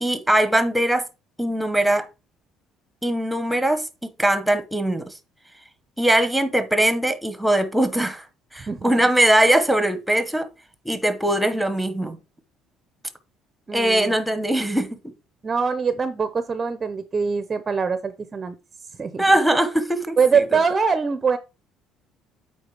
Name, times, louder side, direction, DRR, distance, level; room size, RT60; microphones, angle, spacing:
voice 1, 0.0-1.1 1.4-2.1 3.0-5.1 6.0-8.3 8.5-10.5 10.8-12.2 13.7-15.0 19.2-20.4, right 1 dB, ahead, 0.9 m, -21 dB
voice 2, 13.7-14.1 15.4-18.5 19.0-19.2 20.2-21.4, right 5 dB, 20° right, 0.6 m, -23 dB
8.1 x 4.6 x 4.7 m
cardioid pair, 155°, 0 cm